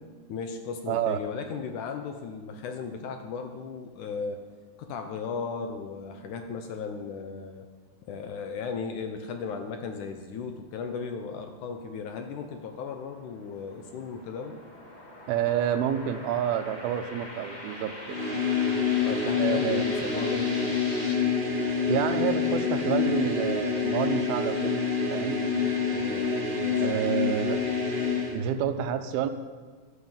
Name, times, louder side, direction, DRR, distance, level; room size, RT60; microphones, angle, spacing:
voice 1, 0.3-4.4 4.8-7.7 8.0-14.6 19.1-20.7 25.4-26.9, left 5 dB, 70° left, 5 dB, 2.1 m, -36 dB
voice 2, 0.9-1.2 15.3-18.2 19.4-19.8 21.9-24.8 25.1-25.4 26.8-27.6 28.3-29.3, right 9 dB, 90° right, 9 dB, 2.8 m, -28 dB
sound 1, 12.8-21.2, left 1 dB, 35° left, 0.6 m, -43 dB
sound 2, 18.1-28.4, left 5 dB, 60° right, 0.5 m, -27 dB
12.5 x 10.5 x 7.3 m, 1.4 s
omnidirectional pair, 4.3 m